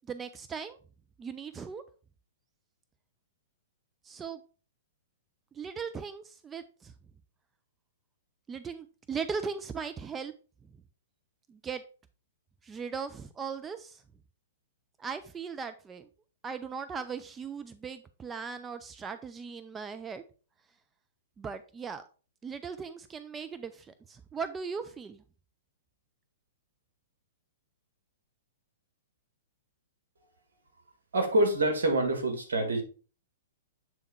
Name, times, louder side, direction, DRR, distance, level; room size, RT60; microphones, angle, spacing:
voice 1, 0.1-0.8 1.2-1.8 4.0-4.4 5.5-6.9 8.5-10.3 11.5-11.8 12.6-14.0 15.0-16.1 16.4-20.2 21.4-22.0 22.4-25.2, right 6 dB, 15° right, 0.4 m, -38 dB
voice 2, 31.1-32.8, right 1 dB, 75° right, 2.0 m, -26 dB
7.6 x 3.6 x 4.3 m
hypercardioid pair, 115°, 0 cm